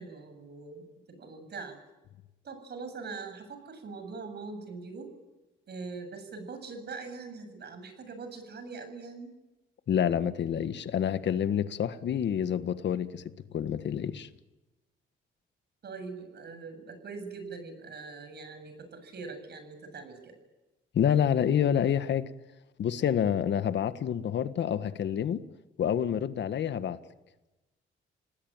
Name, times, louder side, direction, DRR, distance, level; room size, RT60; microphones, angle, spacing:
voice 1, 0.0-1.8 2.4-5.1 5.7-9.3 15.8-20.3, right 4 dB, 55° right, 7.7 m, -42 dB
voice 2, 9.9-13.2 13.5-14.3 20.9-22.3 22.8-25.4 25.8-27.0, left 9 dB, 65° left, 1.7 m, -28 dB
29.0 x 19.0 x 9.1 m
cardioid pair, 90°, 20 cm